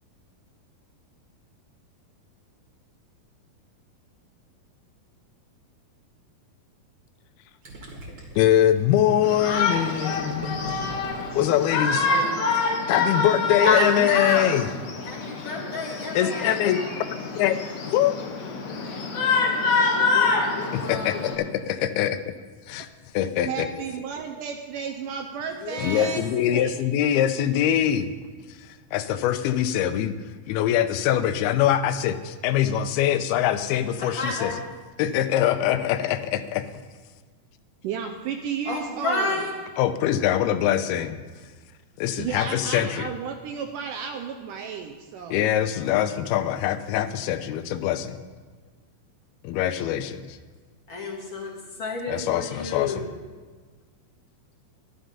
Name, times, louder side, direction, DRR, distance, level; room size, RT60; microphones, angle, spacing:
Gurgling, 7.6-12.3, right 1 dB, 40° right, 2.2 m, -40 dB
voice 1, 8.4-10.7 11.4-12.2 12.9-14.7 16.2-16.8 17.4-18.1 20.7-22.3 22.7-22.9 23.1-23.7 25.8-28.1 28.5-30.2 30.5-34.5 35.0-36.7 39.8-41.2 42.0-43.1 45.3-48.2 49.4-50.4 52.1-53.1, left 11 dB, 85° left, 10 dB, 2.6 m, -23 dB
Shout, 9.2-21.4, left 4 dB, 60° left, 2.0 m, -26 dB
voice 2, 13.6-14.5 15.0-16.6 19.9-21.2 25.5-26.1 34.0-34.6 38.7-39.5 50.9-51.5 51.8-53.0, left 3 dB, 40° left, -2 dB, 2.0 m, -29 dB
voice 3, 23.5-26.8 37.8-39.4 42.2-45.4, right 6 dB, 75° right, 5 dB, 2.0 m, -33 dB
11.5 x 11.5 x 5.5 m, 1.4 s
omnidirectional pair, 4.4 m